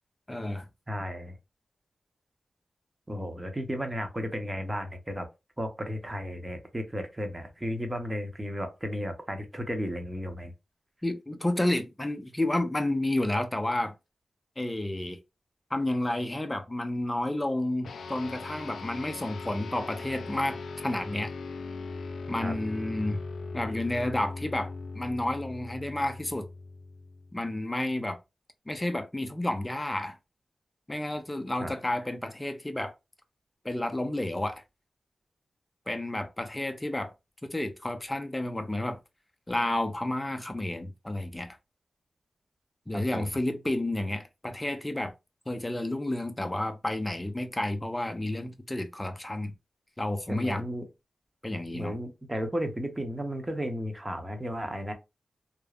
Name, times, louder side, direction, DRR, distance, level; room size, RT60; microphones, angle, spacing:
voice 1, 0.3-0.7 11.0-13.9 14.6-15.2 15.7-21.3 22.3-23.2 23.5-26.5 27.3-28.2 28.7-30.2 30.9-32.9 33.6-34.6 35.9-37.1 37.4-39.0 39.5-41.6 42.9-45.1 45.5-49.5 50.0-50.6 51.4-51.9, left 1 dB, 20° left, 0.6 m, -31 dB
voice 2, 0.9-1.4 3.1-5.3 5.6-10.5 22.4-22.6 31.6-31.7 42.9-43.4 50.3-50.8 51.7-54.9, equal, 20° right, 0.8 m, -34 dB
sound 1, 17.8-27.5, left 3 dB, 85° left, 0.3 m, -39 dB
3.1 x 2.1 x 2.3 m
cardioid pair, 60°, 0 cm